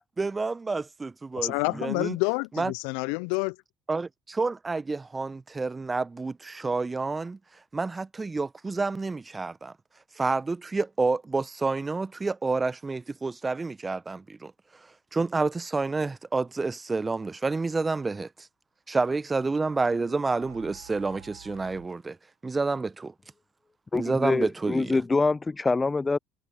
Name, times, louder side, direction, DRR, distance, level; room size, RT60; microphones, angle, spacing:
voice 1, 0.2-2.2 2.5-2.7 3.9-7.4 7.7-9.7 10.2-14.5 15.1-18.5 18.9-22.2 22.4-23.1 23.9-25.0, right 3 dB, 25° right, 1.3 m, -29 dB
voice 2, 1.4-3.6, left 32 dB, 70° left, 0.9 m, -28 dB
sound 1, 19.8-21.9, right 17 dB, 80° right, 3.8 m, -49 dB
voice 3, 23.9-26.2, left 3 dB, 25° left, 0.6 m, -25 dB
figure-of-eight pair, 50°, 0 cm